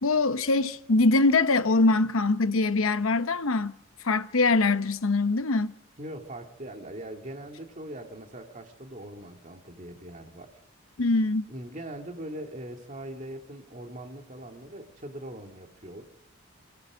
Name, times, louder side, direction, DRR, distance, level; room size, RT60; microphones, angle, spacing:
voice 1, 0.0-3.8 4.0-5.7 11.0-11.5, left 3 dB, 80° left, 0.9 m, -23 dB
voice 2, 6.0-10.5 11.5-16.0, right 1 dB, 35° right, 2.4 m, -41 dB
25.0 x 17.0 x 6.3 m
head